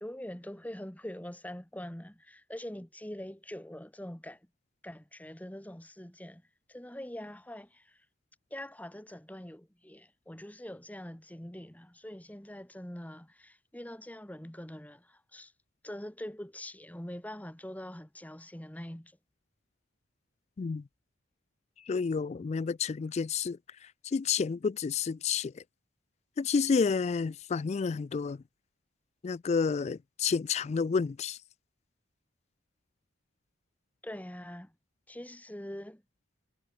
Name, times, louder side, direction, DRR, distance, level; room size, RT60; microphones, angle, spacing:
voice 1, 0.0-4.5 4.8-6.4 6.7-8.0 8.5-15.5 15.8-19.2 34.0-34.7 35.1-36.0, left 1 dB, 10° left, 1.3 m, -44 dB
voice 2, 21.9-23.6 24.0-25.6 26.4-28.4 29.2-31.4, left 5 dB, 35° left, 0.3 m, -30 dB
head